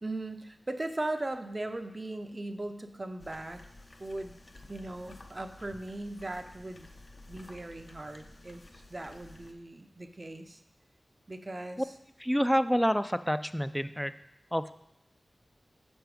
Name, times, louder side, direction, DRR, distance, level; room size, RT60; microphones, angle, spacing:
voice 1, 0.0-3.6 4.0-4.4 4.7-6.9 7.3-10.6 11.3-11.9, right 2 dB, 40° right, 7 dB, 0.7 m, -38 dB
sound 1, 3.2-9.5, left 2 dB, 55° left, 0.7 m, -53 dB
voice 2, 12.2-14.1 14.5-14.7, equal, 5° left, 12 dB, 0.4 m, -28 dB
6.3 x 5.9 x 4.8 m, 0.84 s
cardioid pair, 50°, 0 cm